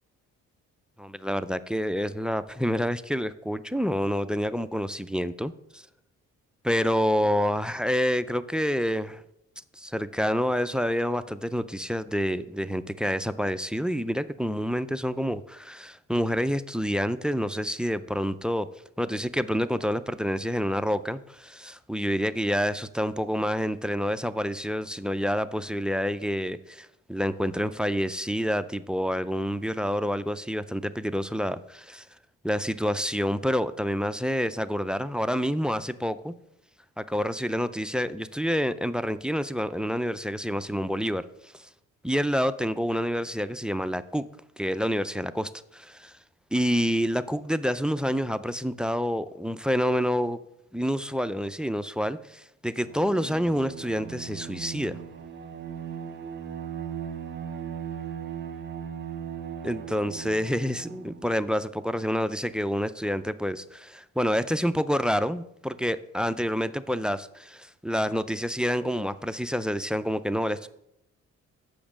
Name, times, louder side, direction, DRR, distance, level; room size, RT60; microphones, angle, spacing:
voice 1, 1.0-5.8 6.6-9.2 9.8-18.7 19.0-32.1 32.4-36.3 37.0-41.2 41.5-41.7 42.0-44.2 44.6-46.1 46.5-50.4 50.7-55.0 59.6-70.7, equal, 5° right, 15 dB, 0.3 m, -28 dB
Bowed string instrument, 52.8-61.3, right 8 dB, 35° right, 1.2 m, -38 dB
7.0 x 5.1 x 7.2 m, 0.80 s
cardioid pair, 90°, 30 cm